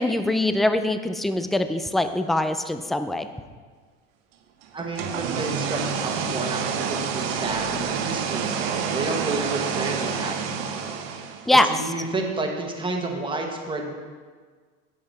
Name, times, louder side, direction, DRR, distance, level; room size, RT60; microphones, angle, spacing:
voice 1, 0.0-3.3 11.5-11.7, left 1 dB, ahead, 9 dB, 0.3 m, -22 dB
voice 2, 4.7-14.1, right 2 dB, 15° right, 1 dB, 1.3 m, -31 dB
sound 1, 4.8-11.6, right 6 dB, 90° right, 1.0 m, -28 dB
9.5 x 7.8 x 4.2 m, 1.5 s
cardioid pair, 125°, 29 cm